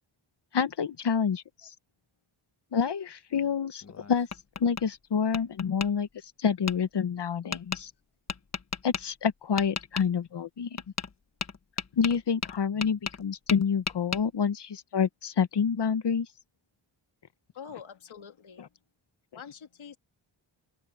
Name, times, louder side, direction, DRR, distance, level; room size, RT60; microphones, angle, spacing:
voice 1, 0.5-1.7 2.7-3.8 4.1-4.3 4.6-6.1 6.4-7.9 8.8-10.7 12.0-16.3, left 6 dB, 60° left, 1.1 m, -28 dB
Tap, 3.8-4.9 5.3-5.9 6.7-6.8 7.5-7.8 8.3-9.0 9.6-10.1 10.8-11.1 11.4-13.2 13.5-14.2, left 5 dB, 35° left, 1.2 m, -34 dB
voice 2, 17.5-18.6 19.4-20.0, left 7 dB, 80° left, 2.2 m, -45 dB
open air
wide cardioid pair, 110°, 47 cm